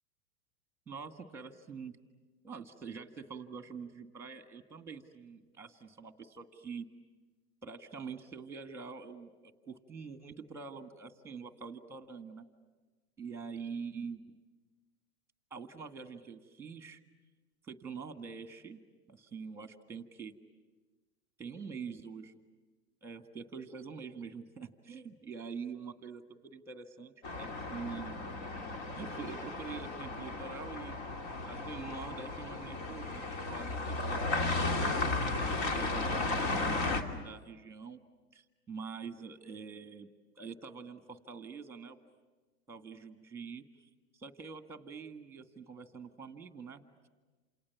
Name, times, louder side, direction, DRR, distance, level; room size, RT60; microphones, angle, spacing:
voice 1, 0.9-2.0 2.4-6.9 7.6-9.3 9.6-12.4 13.2-14.2 15.5-17.0 17.6-18.8 19.1-20.3 21.4-22.3 23.0-28.2 28.9-31.0 31.4-35.2 35.7-38.0 38.3-40.1 40.4-42.0 42.7-46.8, right 5 dB, 5° right, 7 dB, 1.7 m, -45 dB
sound 1, 27.2-37.0, left 2 dB, 50° left, 2.9 m, -35 dB
29.0 x 28.0 x 7.2 m, 1.3 s
hypercardioid pair, 140°, 47 cm